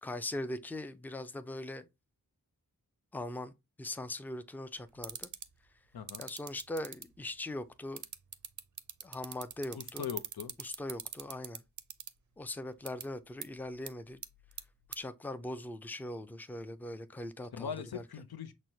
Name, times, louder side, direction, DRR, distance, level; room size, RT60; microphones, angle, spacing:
voice 1, 0.0-1.9 3.1-3.5 3.8-5.3 6.2-8.0 9.0-10.1 10.6-11.6 12.4-14.2 15.0-18.0, left 1 dB, 5° left, 0.4 m, -40 dB
sound 1, 5.0-5.5 6.1-7.0 8.0-12.1 12.9-13.0 13.4-13.5 13.9-14.0 14.2-14.6 14.9-15.0, right 8 dB, 55° right, 0.5 m, -40 dB
voice 2, 5.9-6.3 9.7-10.5 17.5-18.5, left 8 dB, 90° left, 0.6 m, -40 dB
6.1 x 2.1 x 2.7 m
wide cardioid pair, 60°, 36 cm